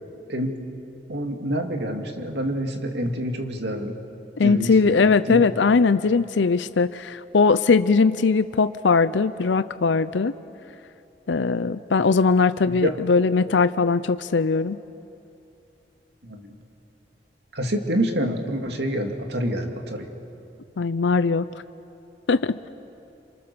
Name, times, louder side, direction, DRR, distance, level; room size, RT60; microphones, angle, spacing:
voice 1, 1.1-3.9 4.4-5.4 12.7-13.0 16.2-16.4 17.5-20.1, equal, 70° right, 3 dB, 2.4 m, -27 dB
voice 2, 4.4-10.3 11.3-14.8 20.8-21.5 22.3-22.7, left 4 dB, 90° left, 13 dB, 0.6 m, -20 dB
28.5 x 26.5 x 6.9 m, 2.7 s
head